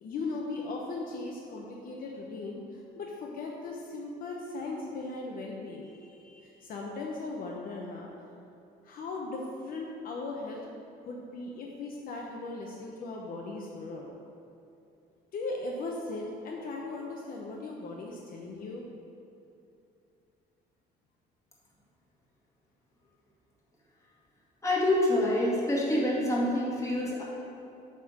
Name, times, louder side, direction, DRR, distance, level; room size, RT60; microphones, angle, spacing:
voice 1, 0.0-8.1 8.8-10.6 11.1-14.1 15.3-18.9, left 3 dB, 60° left, -1 dB, 0.8 m, -38 dB
voice 2, 24.6-27.2, left 1 dB, 20° left, -5 dB, 1.9 m, -26 dB
8.4 x 3.6 x 6.2 m, 2.7 s
cardioid pair, 110°, 17 cm